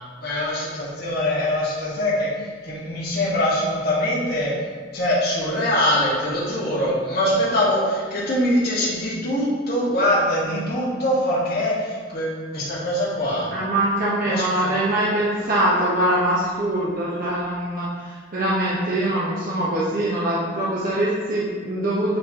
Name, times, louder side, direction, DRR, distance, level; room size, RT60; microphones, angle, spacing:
voice 1, 0.2-2.3 2.6-4.5 4.9-13.5 14.3-14.4, left 1 dB, 60° left, -9 dB, 1.8 m, -23 dB
voice 2, 13.5-22.2, right 1 dB, 50° right, -7 dB, 1.0 m, -23 dB
8.7 x 4.2 x 3.0 m, 1.5 s
head